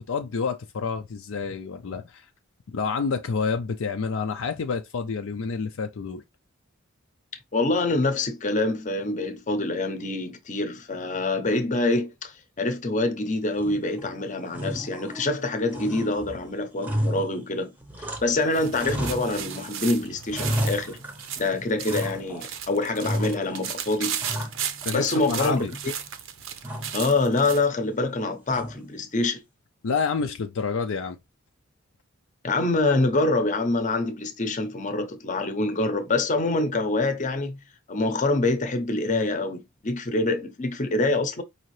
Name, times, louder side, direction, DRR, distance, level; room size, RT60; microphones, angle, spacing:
voice 1, 0.0-2.3 2.7-6.2 24.8-25.7 29.8-31.2, left 5 dB, 65° left, 0.4 m, -28 dB
voice 2, 7.5-17.7 18.2-21.0 21.4-24.2 24.9-25.9 26.9-29.4 32.4-37.6 37.9-41.4, left 2 dB, 35° left, 0.8 m, -25 dB
sound 1, 13.6-14.1 14.5-15.4 15.7-18.4 18.7-19.7 20.1-21.4 21.9-22.5 23.0-23.6 24.0-25.0 25.4-26.1 26.6-27.1 28.5-29.0, equal, 10° right, 0.7 m, -33 dB
sound 2, 18.2-27.7, right 9 dB, 65° right, 0.6 m, -36 dB
4.8 x 2.7 x 3.1 m
head